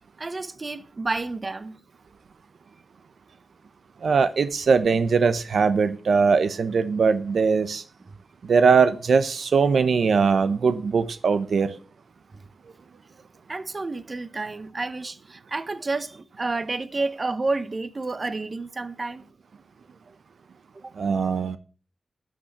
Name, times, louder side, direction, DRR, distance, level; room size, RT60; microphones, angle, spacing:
voice 1, 0.2-1.8 12.3-12.4 13.5-19.2 20.8-20.9, right 3 dB, 35° right, 1.0 m, -30 dB
voice 2, 4.0-7.8 8.5-11.7 21.0-21.6, right 5 dB, 75° right, 0.8 m, -21 dB
11.5 x 6.5 x 6.7 m
wide cardioid pair, 90°, 0 cm